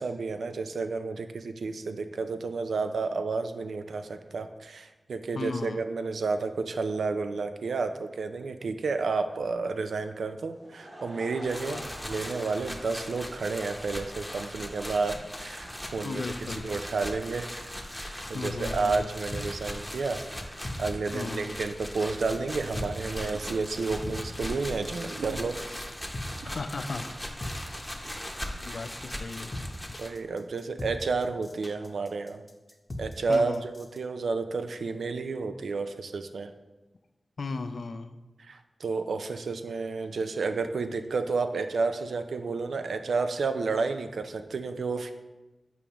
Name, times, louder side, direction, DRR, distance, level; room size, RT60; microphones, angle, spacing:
voice 1, 0.0-11.8 12.1-16.2 16.6-20.2 20.8-25.6 30.0-32.4 33.0-36.5 38.4-45.1, right 4 dB, 90° right, 8 dB, 0.3 m, -31 dB
voice 2, 5.3-5.8 11.7-11.9 16.0-16.7 18.3-19.1 21.1-21.5 26.4-27.1 27.5-28.0 28.6-29.5 33.3-33.6 37.4-38.2, left 3 dB, 75° left, 9 dB, 0.4 m, -36 dB
Laughter / Crowd, 10.3-16.6, equal, 60° right, 1.7 m, -49 dB
sound 1, 11.4-30.1, equal, 5° left, 0.8 m, -39 dB
sound 2, 17.4-34.0, left 1 dB, 40° left, 0.8 m, -40 dB
7.0 x 4.8 x 2.9 m, 1.1 s
cardioid pair, 45°, 0 cm